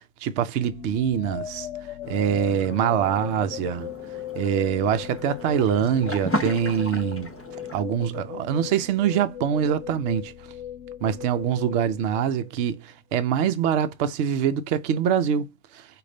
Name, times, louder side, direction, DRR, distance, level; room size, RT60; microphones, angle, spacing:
voice 1, 0.2-1.7 2.1-3.9 4.4-7.3 7.7-10.3 11.0-15.9, right 8 dB, 70° right, 0.9 m, -24 dB
sound 1, 0.7-12.8, left 11 dB, 80° left, 0.9 m, -38 dB
sound 2, 2.0-7.8, equal, 15° left, 0.7 m, -35 dB
4.9 x 2.6 x 4.0 m
omnidirectional pair, 1.3 m